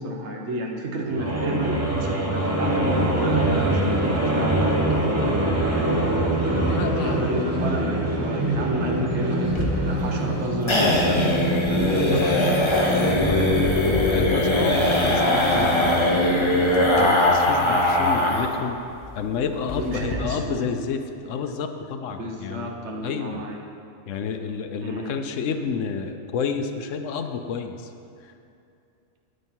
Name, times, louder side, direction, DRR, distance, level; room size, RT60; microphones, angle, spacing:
voice 1, 0.0-5.2 5.7-6.1 6.8-11.4 11.7-12.5 19.7-20.7 22.2-23.7 24.8-25.1, right 1 dB, 60° right, 0 dB, 1.4 m, -30 dB
Multi Creature Voice, 1.1-14.4, right 1 dB, 15° right, 1.0 m, -24 dB
voice 2, 6.7-7.3 11.9-12.4 12.9-13.5 13.8-16.5 16.9-18.8 19.1-23.4 24.1-27.9 28.2-28.3, left 6 dB, 75° left, 7 dB, 1.0 m, -30 dB
sound 1, 9.5-18.6 18.9-19.0 19.3-19.4 19.7-20.1, left 1 dB, 25° left, 1.0 m, -21 dB
9.5 x 8.7 x 4.5 m, 2.6 s
omnidirectional pair, 1.3 m